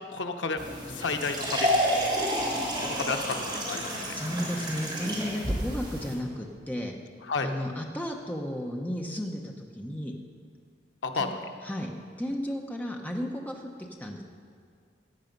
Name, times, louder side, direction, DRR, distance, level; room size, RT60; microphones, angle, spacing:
voice 1, 0.1-1.9 2.8-4.0 7.3-7.5 11.0-11.3, left 4 dB, 90° left, 5 dB, 0.9 m, -31 dB
sound 1, 0.6-6.1, equal, 25° right, 2.8 m, -30 dB
voice 2, 4.1-7.0 7.4-10.1 11.2-11.3 11.6-11.9 12.2-14.2, equal, 10° left, 1 dB, 0.9 m, -34 dB
15.0 x 9.8 x 5.3 m, 2.1 s
head